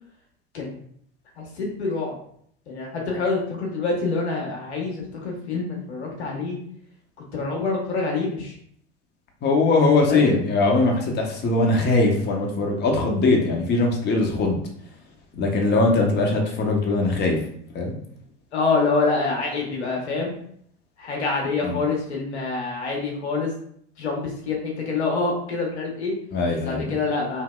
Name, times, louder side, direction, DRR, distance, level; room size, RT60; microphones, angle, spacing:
voice 1, 1.4-2.1 2.7-6.6 7.3-8.5 10.1-10.4 18.5-20.4 21.0-23.5 24.0-26.1 26.6-27.4, left 3 dB, 85° left, -1 dB, 0.9 m, -26 dB
voice 2, 9.4-14.6 15.3-17.4 17.7-17.9 21.6-21.8 26.3-26.8, left 3 dB, 35° left, 1 dB, 0.8 m, -21 dB
3.0 x 2.7 x 2.2 m, 0.65 s
hypercardioid pair, 80°, 33 cm